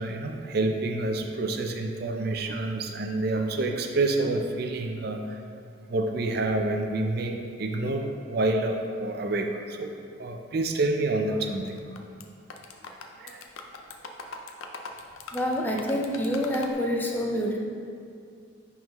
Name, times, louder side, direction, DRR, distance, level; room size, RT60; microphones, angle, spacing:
voice 1, 0.0-5.4 5.9-9.9 10.2-11.8 13.2-13.4, right 2 dB, 50° right, 4 dB, 0.4 m, -28 dB
sound 1, 11.8-12.2 12.5-16.7, left 3 dB, 90° left, 0.5 m, -41 dB
voice 2, 15.3-17.6, equal, 10° left, -1 dB, 0.4 m, -27 dB
10.5 x 3.7 x 3.0 m, 2.3 s
head